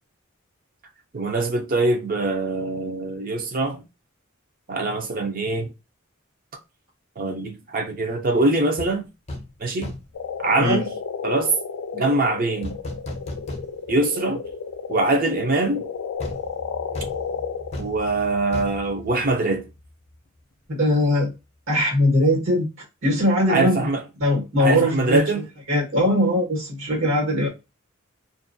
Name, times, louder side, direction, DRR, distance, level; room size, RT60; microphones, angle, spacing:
voice 1, 1.1-3.8 4.7-5.7 7.2-9.1 9.6-9.9 10.4-10.9 11.2-11.5 11.9-12.7 13.9-14.4 14.9-15.9 17.8-19.7 23.5-24.0 24.6-25.5, right 2 dB, 45° right, 0.5 m, -23 dB
sound 1, 8.8-8.9 9.3-9.5 9.8-10.2 12.6-14.1 14.4-14.5 16.2-19.9 20.1-20.3, left 1 dB, 35° left, 0.6 m, -35 dB
sound 2, 10.1-17.9, left 6 dB, 80° left, 0.4 m, -32 dB
voice 2, 20.7-21.3 21.7-22.7 23.0-23.9 24.2-25.2 25.7-27.5, left 1 dB, 75° right, 1.4 m, -20 dB
2.5 x 2.2 x 2.6 m
head